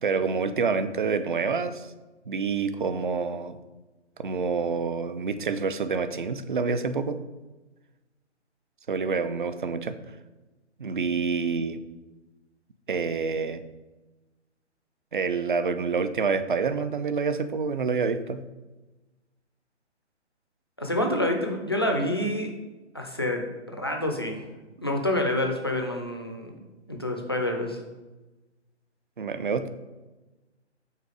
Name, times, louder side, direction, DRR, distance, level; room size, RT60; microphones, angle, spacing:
voice 1, 0.0-1.9 2.3-3.6 4.2-7.2 8.9-10.0 10.8-11.8 12.9-13.6 15.1-18.4 29.2-29.7, right 5 dB, 45° right, 12 dB, 0.4 m, -27 dB
voice 2, 20.8-22.5 22.9-24.4 24.8-26.6 26.9-27.8, left 1 dB, 25° left, 3 dB, 0.4 m, -27 dB
5.6 x 3.7 x 4.8 m, 1.2 s
figure-of-eight pair, 135°, 35 cm